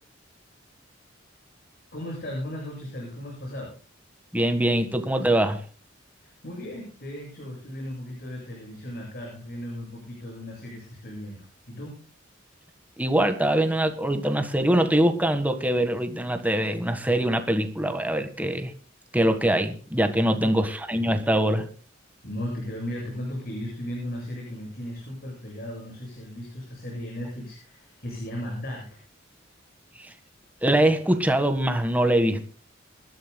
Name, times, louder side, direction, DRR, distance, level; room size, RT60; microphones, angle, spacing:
voice 1, 1.9-3.7 6.2-12.0 20.4-21.1 22.2-29.0, left 1 dB, 55° left, 7.8 m, -36 dB
voice 2, 4.3-5.6 13.0-18.7 19.1-21.7 30.6-32.4, right 1 dB, 10° right, 1.6 m, -23 dB
27.0 x 12.5 x 2.3 m
head